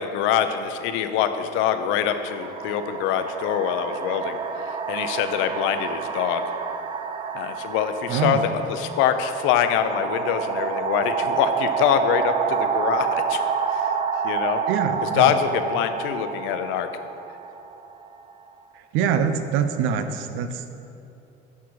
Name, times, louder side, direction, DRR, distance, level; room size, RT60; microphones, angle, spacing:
voice 1, 0.0-4.4 4.9-6.4 7.3-13.4 13.7-13.8 14.2-14.6 15.0-16.9, left 9 dB, 75° left, 9 dB, 0.7 m, -24 dB
sound 1, 0.7-0.9 1.8-18.5, right 6 dB, 25° right, 0.4 m, -29 dB
voice 2, 8.1-8.4 14.7-15.4 18.7-20.7, right 7 dB, 75° right, 9 dB, 0.7 m, -25 dB
9.5 x 5.8 x 4.7 m, 2.9 s
cardioid pair, 135°, 20 cm